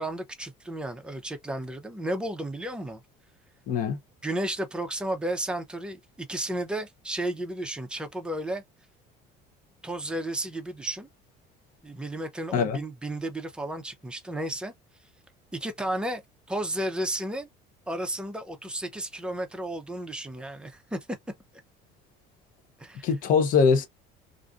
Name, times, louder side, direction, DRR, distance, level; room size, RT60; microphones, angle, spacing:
voice 1, 0.0-3.0 4.2-8.6 9.8-11.1 11.8-14.7 15.5-16.2 16.5-17.5 17.9-21.0 22.8-23.1, right 1 dB, 5° right, 0.5 m, -33 dB
voice 2, 3.7-4.0 12.5-12.8 23.0-23.9, left 5 dB, 50° left, 0.6 m, -22 dB
2.5 x 2.4 x 2.3 m
cardioid pair, 145°, 17 cm